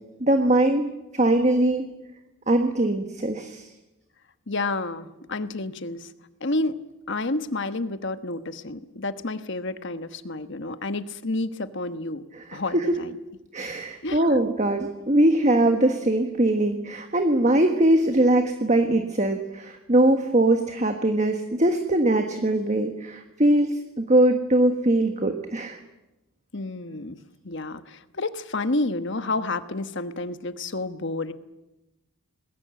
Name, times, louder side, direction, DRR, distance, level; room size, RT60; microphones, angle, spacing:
voice 1, 0.2-1.8 2.5-3.7 12.4-13.0 13.5-25.8, right 1 dB, 30° right, 6 dB, 1.4 m, -21 dB
voice 2, 4.5-6.1 6.4-6.8 7.1-12.2 12.5-13.2 14.0-14.4 26.5-27.2 27.4-31.3, left 2 dB, 55° left, 11 dB, 1.3 m, -30 dB
27.0 x 20.5 x 7.8 m, 1.0 s
head